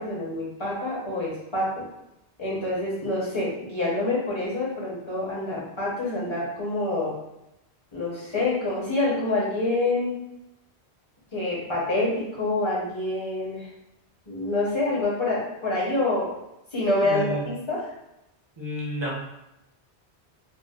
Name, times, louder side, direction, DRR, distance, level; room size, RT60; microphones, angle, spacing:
voice 1, 0.0-1.8 2.4-7.2 7.9-10.2 11.3-13.7 14.3-16.3 16.7-17.9, left 2 dB, 30° left, -6 dB, 1.0 m, -27 dB
voice 2, 17.0-17.4 18.6-19.1, left 1 dB, 25° right, -5 dB, 0.9 m, -30 dB
4.3 x 2.2 x 2.3 m, 0.88 s
omnidirectional pair, 1.1 m